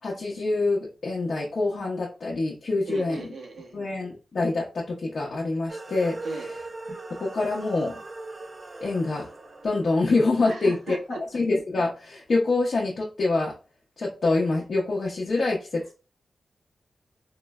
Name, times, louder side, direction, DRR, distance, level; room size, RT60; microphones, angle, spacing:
voice 1, 0.0-3.3 3.7-6.5 7.1-8.0 8.8-9.3 9.6-11.0 11.3-13.6 14.0-15.9, left 3 dB, 60° left, 0.7 m, -26 dB
voice 2, 2.9-3.8 6.2-6.5 10.5-11.2, right 3 dB, 80° right, 0.7 m, -37 dB
sound 1, 5.7-11.1, right 2 dB, 40° right, 0.4 m, -40 dB
3.7 x 2.1 x 2.3 m
cardioid pair, 80°, 0 cm